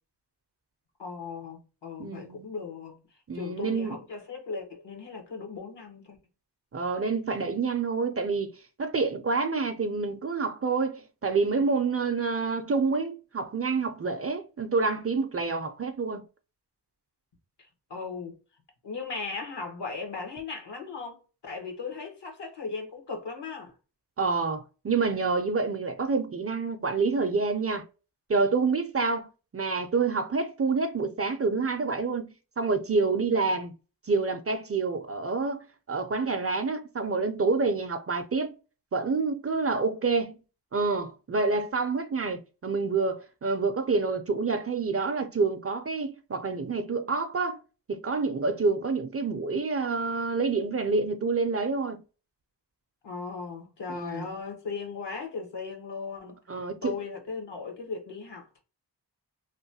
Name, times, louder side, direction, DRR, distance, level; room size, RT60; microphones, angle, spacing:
voice 1, 1.0-3.0 3.3-6.2 17.6-18.4 18.8-23.7 53.0-58.6, left 4 dB, 75° left, 1.3 m, -37 dB
voice 2, 2.0-2.5 3.3-3.9 6.7-8.5 8.8-16.2 24.2-27.8 28.3-33.7 34.1-38.5 38.9-40.4 40.7-47.6 47.9-52.0 53.9-54.3 56.5-56.9, right 4 dB, 35° right, 0.4 m, -28 dB
3.1 x 2.1 x 2.7 m
cardioid pair, 60°, 43 cm